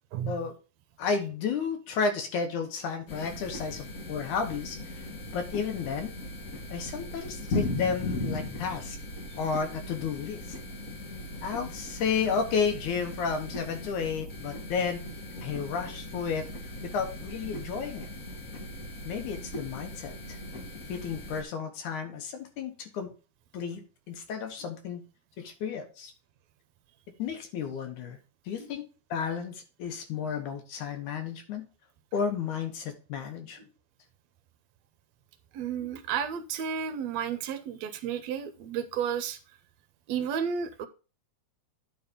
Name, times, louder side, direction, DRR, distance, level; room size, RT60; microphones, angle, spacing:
voice 1, 1.0-5.1 5.3-6.1 6.7-9.0 9.4-10.4 11.4-15.0 15.4-16.5 16.8-18.1 19.1-20.4 20.9-23.1 23.5-25.0 25.4-26.1 27.2-28.2 28.5-28.8 29.1-31.7 32.1-33.6, left 6 dB, 75° left, 6 dB, 2.6 m, -32 dB
sound 1, 3.1-21.4, left 1 dB, 45° left, 1.1 m, -38 dB
voice 2, 35.5-39.4 40.1-40.9, right 7 dB, 70° right, 11 dB, 1.8 m, -32 dB
9.5 x 4.2 x 5.2 m, 0.34 s
omnidirectional pair, 3.6 m